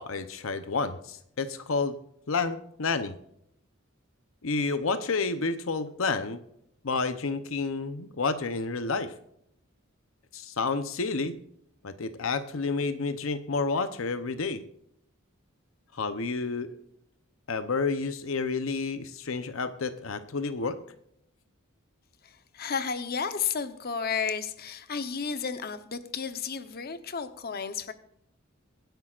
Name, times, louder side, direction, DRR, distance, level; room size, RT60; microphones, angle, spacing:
voice 1, 0.0-1.9 2.3-3.1 4.4-6.4 6.8-9.1 10.3-11.3 11.8-14.6 15.9-16.8 17.5-20.8, left 4 dB, 75° left, 11 dB, 0.8 m, -30 dB
voice 2, 22.2-27.9, left 6 dB, 50° left, 10 dB, 0.9 m, -32 dB
24.0 x 10.5 x 2.5 m, 0.74 s
head